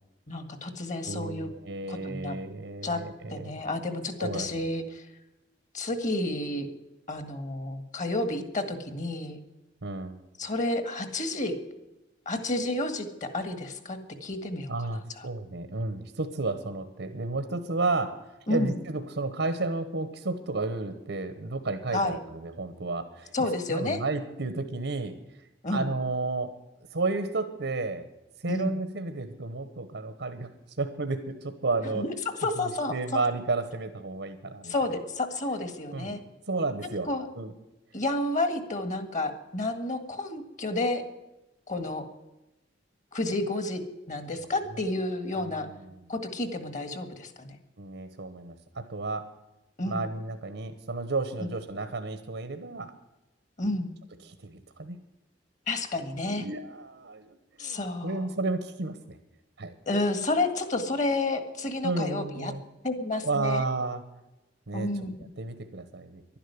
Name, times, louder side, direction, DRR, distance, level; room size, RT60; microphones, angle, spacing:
voice 1, 0.3-1.5 1.9-2.4 2.8-3.0 3.3-5.1 5.7-6.7 7.1-9.4 10.4-11.5 12.2-15.0 18.5-18.8 21.9-22.2 23.3-24.0 25.6-25.9 28.5-28.7 31.9-33.2 34.6-36.2 37.1-37.3 37.9-41.0 41.7-42.0 43.1-43.8 44.1-45.7 46.1-47.6 49.8-50.0 51.4-51.5 53.6-53.9 55.7-56.5 57.6-58.3 59.8-62.5 62.8-63.6 64.7-65.1, left 2 dB, 45° left, 9 dB, 1.7 m, -30 dB
voice 2, 1.1-3.5 4.2-4.5 9.8-10.2 14.7-23.3 23.7-25.1 25.7-26.5 26.9-28.0 28.4-30.5 30.8-32.0 32.6-34.7 35.9-36.2 36.5-37.1 37.3-37.5 44.4-44.5 44.7-44.8 45.4-46.0 47.8-49.3 49.9-52.9 54.2-55.0 56.3-59.2 59.6-59.7 61.8-62.6 63.2-64.0 64.7-64.9 65.4-66.2, right 3 dB, 85° right, 9 dB, 1.1 m, -32 dB
11.5 x 10.0 x 9.5 m, 0.98 s
head